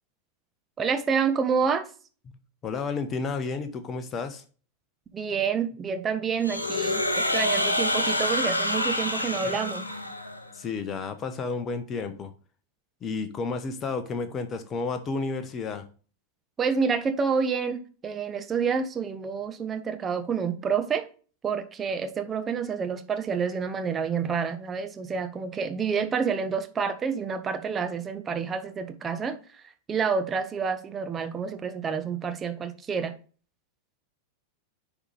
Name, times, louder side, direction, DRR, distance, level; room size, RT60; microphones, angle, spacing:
voice 1, 0.8-1.9 5.1-9.9 16.6-21.1 21.4-29.3 29.9-33.1, right 6 dB, 20° right, 0.8 m, -28 dB
voice 2, 2.6-4.4 9.4-9.5 10.5-12.3 13.0-15.9, left 4 dB, 25° left, 1.0 m, -31 dB
sound 1, 6.4-10.5, left 1 dB, 85° left, 0.8 m, -27 dB
10.0 x 4.0 x 3.4 m
figure-of-eight pair, 90°, 0 cm